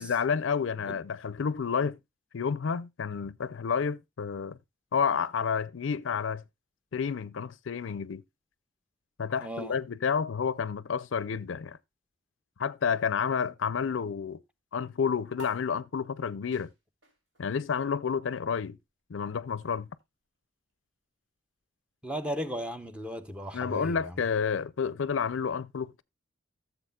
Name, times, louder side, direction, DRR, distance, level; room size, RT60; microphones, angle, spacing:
voice 1, 0.0-2.0 2.3-4.6 4.9-6.4 6.9-8.2 9.2-11.8 12.6-14.4 14.7-16.7 17.4-18.8 19.1-19.9 23.5-26.0, left 6 dB, 75° left, 0.5 m, -30 dB
voice 2, 9.4-9.8 22.0-24.1, equal, 5° right, 0.7 m, -36 dB
sound 1, 15.3-22.2, left 2 dB, 70° right, 3.3 m, -54 dB
14.0 x 7.1 x 2.3 m
head